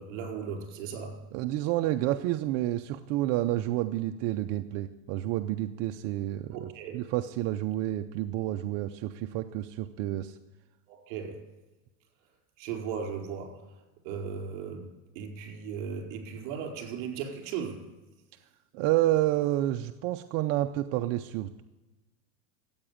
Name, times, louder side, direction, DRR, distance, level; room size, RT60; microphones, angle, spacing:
voice 1, 0.0-1.2 6.5-7.0 10.9-11.5 12.6-17.9, right 6 dB, 55° right, 4.6 m, -37 dB
voice 2, 1.3-10.4 18.7-21.6, right 14 dB, 35° right, 0.5 m, -29 dB
14.0 x 8.8 x 8.5 m
supercardioid pair, 140°, 44 cm